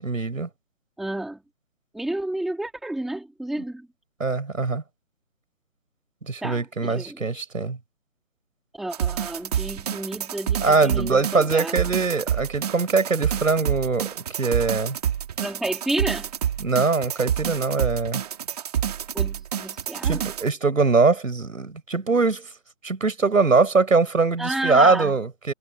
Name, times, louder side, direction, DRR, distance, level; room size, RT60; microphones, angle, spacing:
voice 1, 0.0-0.5 4.2-4.8 6.3-7.8 10.6-15.0 16.6-18.2 20.0-22.5 22.8-25.5, right 4 dB, 90° right, 7.1 m, -22 dB
voice 2, 1.0-1.4 1.9-3.9 6.4-7.2 8.7-11.8 15.4-16.3 19.1-20.2 24.4-25.1, right 1 dB, ahead, 2.3 m, -31 dB
sound 1, 8.9-20.5, right 9 dB, 30° right, 2.2 m, -28 dB
hypercardioid pair, 165°, 39 cm